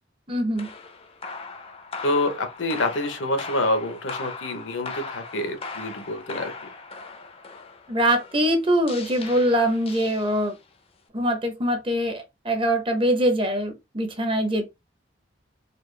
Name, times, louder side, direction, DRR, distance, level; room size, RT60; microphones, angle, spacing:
voice 1, 0.3-0.7 7.9-10.6 11.1-14.6, equal, 25° right, 0.7 m, -23 dB
sound 1, 0.5-10.7, left 4 dB, 30° left, 0.5 m, -39 dB
voice 2, 2.0-6.5, left 1 dB, 75° left, 0.9 m, -27 dB
4.2 x 2.4 x 3.2 m
head